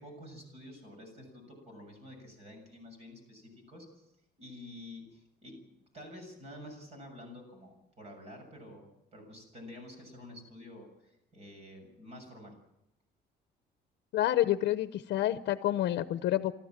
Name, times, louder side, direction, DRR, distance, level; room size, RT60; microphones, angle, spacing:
voice 1, 0.0-4.1 4.4-5.6 5.9-12.5, left 1 dB, 40° right, 4 dB, 7.1 m, -49 dB
voice 2, 14.1-16.5, left 13 dB, 85° left, 11 dB, 0.8 m, -28 dB
29.0 x 13.5 x 7.4 m, 0.88 s
cardioid pair, 175°, 17 cm